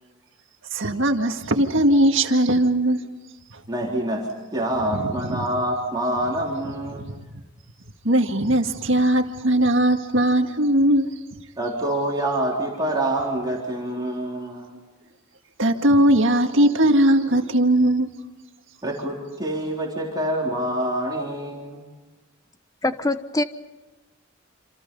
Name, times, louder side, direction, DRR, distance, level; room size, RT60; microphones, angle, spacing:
voice 1, 0.7-3.0 4.9-5.4 8.0-11.1 15.6-18.1, right 1 dB, 65° right, 5 dB, 1.9 m, -19 dB
voice 2, 3.7-4.3 4.5-7.0 11.6-14.8 18.8-21.8, right 1 dB, 20° right, -3 dB, 3.9 m, -26 dB
voice 3, 22.8-23.4, left 2 dB, 15° left, 10 dB, 1.0 m, -23 dB
27.5 x 27.5 x 5.5 m, 1.2 s
head